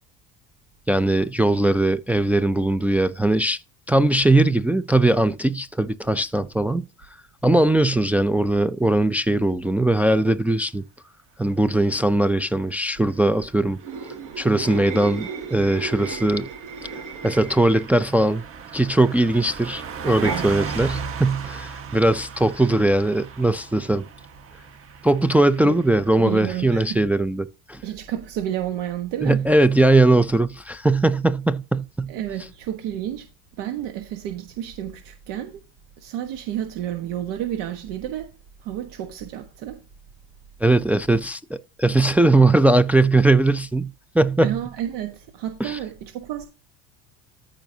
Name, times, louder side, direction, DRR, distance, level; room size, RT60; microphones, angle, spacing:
voice 1, 0.9-3.6 3.9-6.8 7.4-10.8 11.4-13.8 14.4-16.5 17.2-18.4 18.7-24.1 25.0-27.8 29.2-32.1 40.6-43.9 44.1-44.6 45.6-45.8, right 2 dB, 5° right, 0.4 m, -20 dB
Car passing by / Truck, 13.4-26.4, right 6 dB, 40° right, 1.5 m, -38 dB
sound 1, 13.8-18.0 20.0-20.4, right 5 dB, 65° right, 4.3 m, -34 dB
voice 2, 26.2-27.0 27.8-29.4 32.1-33.3 33.6-35.6 36.0-38.3 38.6-39.8 44.4-46.5, right 11 dB, 85° right, 1.3 m, -30 dB
14.0 x 5.1 x 2.7 m
cardioid pair, 130°, 33 cm